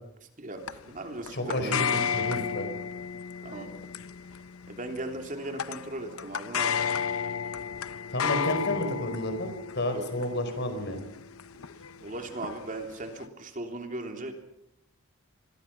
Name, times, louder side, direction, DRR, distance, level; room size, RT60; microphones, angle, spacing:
voice 1, 0.4-2.0 3.4-3.8 4.7-6.9 9.9-10.1 12.0-14.3, right 2 dB, 35° right, 4 dB, 3.3 m, -38 dB
sound 1, 0.7-13.3, left 7 dB, 75° left, 0.8 m, -33 dB
voice 2, 1.3-1.9 2.1-2.7 8.1-11.0, left 1 dB, 50° left, 8 dB, 4.7 m, -31 dB
28.0 x 22.0 x 6.1 m, 0.80 s
head